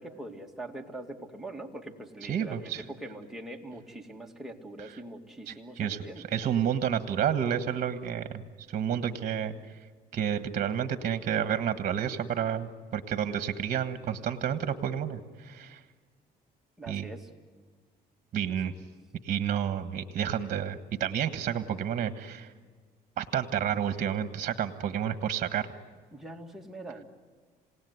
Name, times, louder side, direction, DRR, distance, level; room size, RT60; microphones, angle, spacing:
voice 1, 0.0-6.2 16.8-17.3 26.1-27.0, right 1 dB, ahead, 0 dB, 2.4 m, -43 dB
voice 2, 2.2-2.8 5.5-6.0 6.3-8.4 8.7-9.6 10.1-15.8 16.9-17.1 18.3-18.7 19.2-22.5 23.2-25.7, right 9 dB, 50° right, 10 dB, 1.5 m, -30 dB
27.5 x 18.0 x 9.6 m, 1.5 s
cardioid pair, 110°, 17 cm